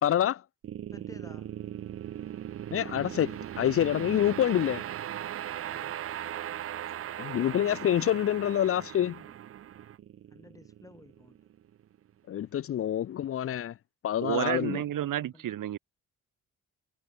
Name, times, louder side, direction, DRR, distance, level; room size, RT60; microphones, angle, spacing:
voice 1, 0.0-0.4 2.7-4.8 7.2-9.2 12.3-13.7 14.0-14.8, left 11 dB, 40° left, 0.4 m, -27 dB
sound 1, 0.6-11.8, right 11 dB, 40° right, 0.4 m, -39 dB
voice 2, 0.9-1.6 5.7-6.0 9.2-9.3 10.3-11.4 14.2-15.6, left 2 dB, 10° left, 2.1 m, -54 dB
voice 3, 14.2-15.8, right 12 dB, 65° right, 1.2 m, -30 dB
cardioid pair, 110°, 34 cm